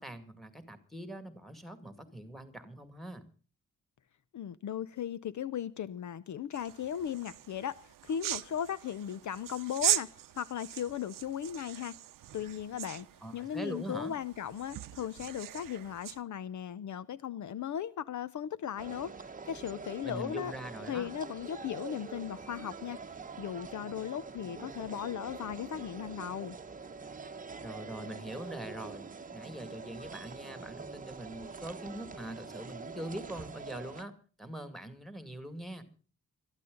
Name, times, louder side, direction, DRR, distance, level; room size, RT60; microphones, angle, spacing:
voice 1, 0.0-3.2 13.2-14.1 20.0-21.1 27.6-35.8, right 1 dB, ahead, 2.2 m, -43 dB
voice 2, 4.3-10.1 10.4-12.0 12.3-13.1 13.3-19.1 19.5-20.5 20.9-26.6, left 9 dB, 60° left, 0.7 m, -37 dB
sound 1, 6.5-16.2, right 13 dB, 80° right, 0.7 m, -39 dB
sound 2, 18.8-34.0, right 4 dB, 25° right, 1.0 m, -45 dB
22.0 x 13.5 x 3.8 m
wide cardioid pair, 150°, 32 cm